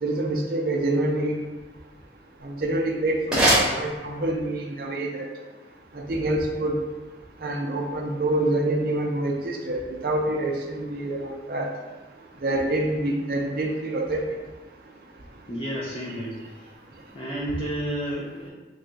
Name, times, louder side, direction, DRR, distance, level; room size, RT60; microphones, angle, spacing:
voice 1, 0.0-1.3 2.4-5.3 6.1-6.8 7.4-11.7 12.4-14.2, right 1 dB, 55° right, 1 dB, 0.5 m, -26 dB
sound 1, 2.4-4.5, right 1 dB, 5° right, 0.9 m, -25 dB
voice 2, 15.5-16.7 17.1-18.5, right 1 dB, 30° left, -8 dB, 0.5 m, -31 dB
3.3 x 2.3 x 3.9 m, 1.2 s
head